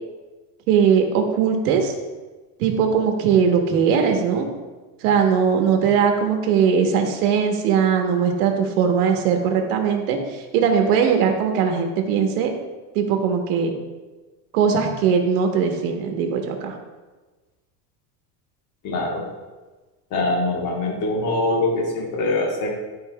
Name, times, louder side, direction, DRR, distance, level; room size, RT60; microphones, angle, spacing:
voice 1, 0.7-1.9 2.6-4.5 5.0-12.5 12.9-13.7 14.5-16.7, right 6 dB, 80° right, 4 dB, 1.2 m, -20 dB
voice 2, 18.8-19.2 20.1-22.7, left 2 dB, 40° left, -2 dB, 1.3 m, -23 dB
11.5 x 4.1 x 2.3 m, 1.2 s
cardioid pair, 145°, 44 cm